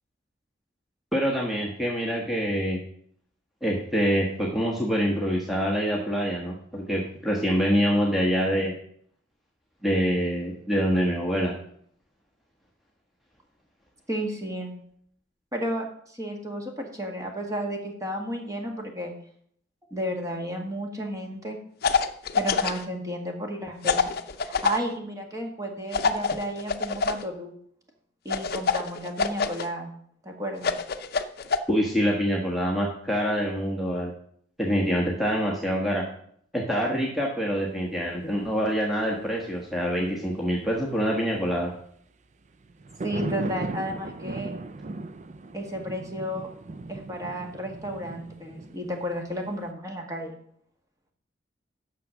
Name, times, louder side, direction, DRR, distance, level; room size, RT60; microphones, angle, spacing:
voice 1, 1.1-2.8 3.6-8.7 9.8-11.5 31.7-34.1 34.6-36.0 36.5-41.7, equal, ahead, -2 dB, 1.3 m, -25 dB
voice 2, 14.1-14.8 15.5-19.1 19.9-21.6 22.4-24.0 24.4-27.6 28.3-29.9 30.2-30.7 43.0-44.5 45.5-46.5 46.9-50.4, equal, 20° right, 2 dB, 1.7 m, -32 dB
sound 1, 21.8-22.8 23.8-24.8 25.9-27.2 28.3-29.7 30.6-31.6, left 5 dB, 55° left, 0.6 m, -25 dB
sound 2, 42.6-49.7, right 2 dB, 40° right, 0.5 m, -36 dB
9.3 x 6.5 x 6.2 m, 0.65 s
head